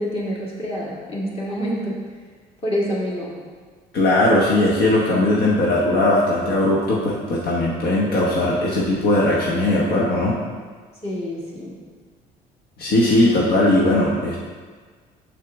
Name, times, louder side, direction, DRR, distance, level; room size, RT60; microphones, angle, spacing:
voice 1, 0.0-2.0 2.6-3.4 11.0-11.7, equal, 35° left, -4 dB, 2.1 m, -27 dB
voice 2, 3.9-10.4 12.8-14.4, left 1 dB, 70° left, -5 dB, 1.1 m, -19 dB
6.7 x 6.4 x 3.6 m, 1.5 s
cardioid pair, 110°, 17 cm